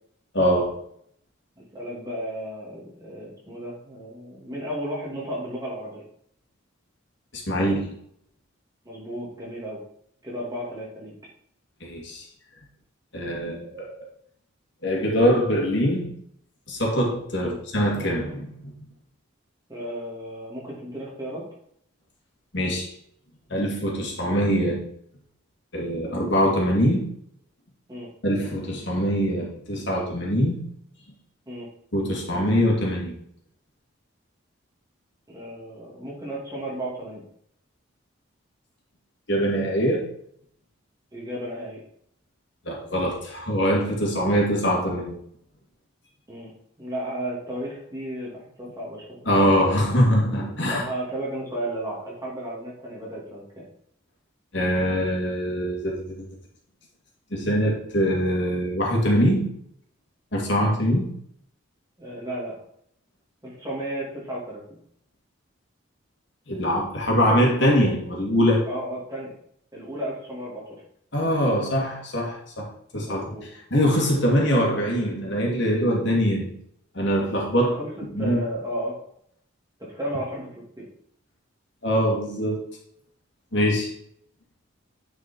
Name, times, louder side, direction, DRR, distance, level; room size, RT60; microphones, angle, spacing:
voice 1, 0.3-0.8 7.5-7.9 11.8-12.2 13.1-13.9 14.8-16.1 16.7-18.7 22.5-22.9 23.5-24.8 25.7-27.1 28.2-30.6 31.9-33.2 39.3-40.1 42.6-45.2 49.3-50.9 54.5-56.2 57.3-59.5 60.3-61.1 66.5-68.7 71.1-72.7 72.9-73.2 73.7-76.6 76.9-77.7 78.1-78.4 81.8-82.6 83.5-83.9, equal, 60° left, -2 dB, 2.3 m, -23 dB
voice 2, 1.7-6.0 8.8-9.8 10.2-11.1 17.4-17.6 19.7-21.4 27.9-28.1 31.5-31.7 35.3-37.2 41.1-41.8 46.3-46.5 46.8-49.2 50.7-53.6 62.0-62.6 63.4-64.8 68.6-69.3 69.7-70.8 73.0-73.5 77.6-78.9 79.8-80.9, right 1 dB, 20° right, -5 dB, 2.8 m, -34 dB
9.5 x 4.8 x 4.6 m, 0.68 s
head